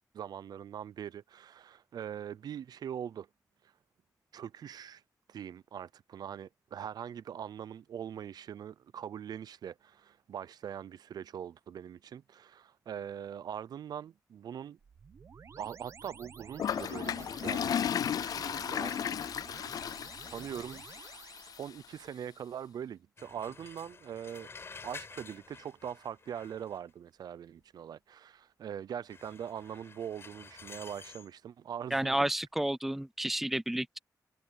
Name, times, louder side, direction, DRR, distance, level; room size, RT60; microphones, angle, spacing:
voice 1, 0.1-3.3 3.6-3.7 4.3-5.0 5.3-14.8 15.6-19.1 20.3-24.5 24.8-32.1, right 9 dB, 80° right, 0.5 m, -42 dB
sound 1, 14.8-21.6, right 6 dB, 45° right, 1.0 m, -51 dB
Toilet flush, 16.6-21.6, left 8 dB, 65° left, 0.4 m, -34 dB
sound 2, 23.2-26.9 29.1-31.3, left 4 dB, 40° left, 6.0 m, -50 dB
voice 2, 31.9-34.0, right 1 dB, 5° right, 0.4 m, -31 dB
wide cardioid pair, 155°, 7 cm